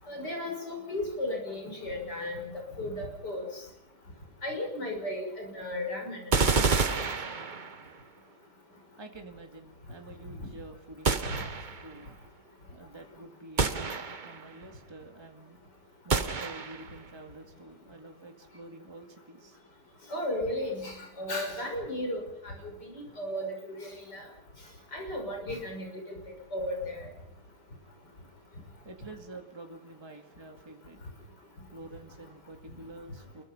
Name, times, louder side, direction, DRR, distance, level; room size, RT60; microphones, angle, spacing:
voice 1, 0.1-2.5 2.8-3.6 4.4-6.3 11.3-11.4 20.1-22.5 22.8-24.2 24.9-26.2 26.5-27.1, left 1 dB, 85° left, 2 dB, 7.0 m, -35 dB
sound 1, 6.3-7.9 11.0-11.9 13.6-14.5 16.1-17.0, right 4 dB, 30° right, 1.1 m, -28 dB
voice 2, 9.0-11.5 11.8-12.2 12.7-15.6 16.0-19.6 28.8-31.0 31.7-33.4, right 2 dB, 15° right, 3 dB, 2.1 m, -48 dB
28.0 x 22.5 x 5.6 m, 0.79 s
omnidirectional pair, 1.8 m